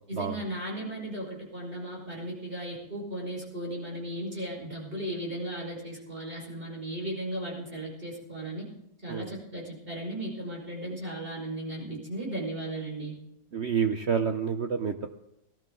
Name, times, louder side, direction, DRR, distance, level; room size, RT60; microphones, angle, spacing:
voice 1, 0.1-8.7 9.0-13.2, right 1 dB, 30° right, -3 dB, 5.4 m, -36 dB
voice 2, 13.5-15.1, right 7 dB, 55° right, 7 dB, 0.8 m, -28 dB
18.5 x 14.0 x 3.9 m, 0.86 s
omnidirectional pair, 1.9 m